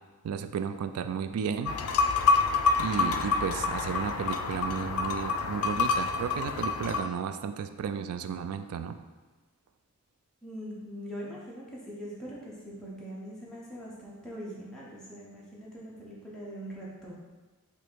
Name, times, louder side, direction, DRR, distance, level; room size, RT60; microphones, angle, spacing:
voice 1, 0.2-1.7 2.8-8.9, right 7 dB, 80° right, 10 dB, 0.3 m, -33 dB
sound 1, 1.6-7.0, left 4 dB, 80° left, 0.4 m, -27 dB
voice 2, 10.4-17.1, equal, 5° left, -7 dB, 0.9 m, -42 dB
4.2 x 2.8 x 4.5 m, 1.3 s
head